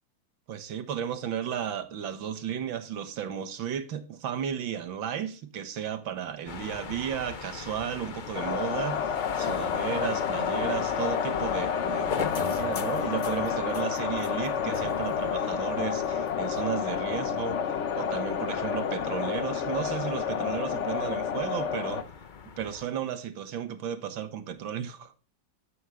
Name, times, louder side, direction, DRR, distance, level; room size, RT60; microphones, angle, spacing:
voice 1, 0.5-17.6 18.0-22.1 22.6-25.1, right 9 dB, 80° right, 2.0 m, -34 dB
sound 1, 6.5-22.9, left 6 dB, 70° left, 0.4 m, -40 dB
sound 2, 8.3-22.0, left 7 dB, 50° left, 0.9 m, -30 dB
13.0 x 8.2 x 6.3 m
omnidirectional pair, 2.1 m